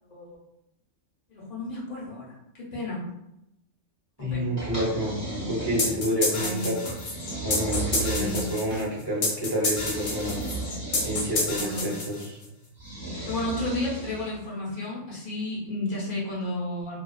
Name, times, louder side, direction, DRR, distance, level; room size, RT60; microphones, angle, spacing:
voice 1, 1.3-2.3 2.5-3.1 4.2-4.5 6.3-6.8 8.0-8.6 11.6-11.9 13.3-17.0, left 1 dB, 40° left, -6 dB, 0.8 m, -32 dB
voice 2, 4.2-5.1 5.5-6.8 7.4-10.4 11.0-12.4, equal, 30° right, -5 dB, 0.4 m, -29 dB
sound 1, 4.6-6.2 6.8-8.9 9.7-11.6 12.8-14.4, right 3 dB, 15° right, 0.9 m, -35 dB
sound 2, 5.8-12.5, left 2 dB, 80° left, 1.1 m, -29 dB
2.3 x 2.3 x 2.3 m, 0.85 s
omnidirectional pair, 1.3 m